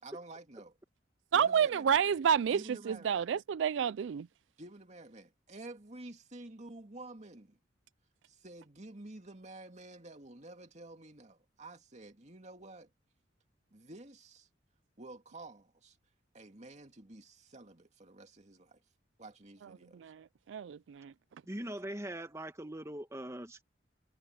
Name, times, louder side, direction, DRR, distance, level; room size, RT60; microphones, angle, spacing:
voice 1, 0.0-0.7 1.3-1.9 2.5-3.3 4.6-7.6 8.3-12.9 13.7-14.5 15.0-16.0 16.3-18.8 19.2-20.1, right 2 dB, 40° right, 2.4 m, -50 dB
voice 2, 1.3-4.3 19.9-21.1, right 8 dB, 70° right, 0.3 m, -30 dB
voice 3, 21.4-23.6, right 1 dB, 15° right, 1.6 m, -41 dB
head